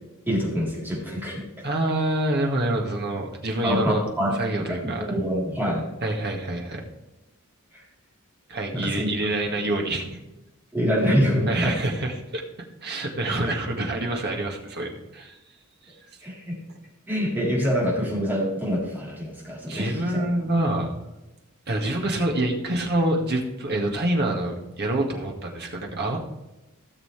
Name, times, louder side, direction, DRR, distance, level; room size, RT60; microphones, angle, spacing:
voice 1, 0.3-1.6 3.6-4.4 4.7-5.8 8.7-9.1 10.7-11.8 13.3-13.4 16.2-16.6 17.1-20.3, equal, 10° right, -5 dB, 4.0 m, -25 dB
voice 2, 1.6-4.0 4.3-5.2 6.0-6.8 8.5-10.2 11.5-12.4 12.8-15.4 15.9-16.0 19.7-21.0 21.7-26.2, right 1 dB, 50° right, 1 dB, 2.1 m, -26 dB
17.0 x 6.8 x 3.4 m, 0.98 s
head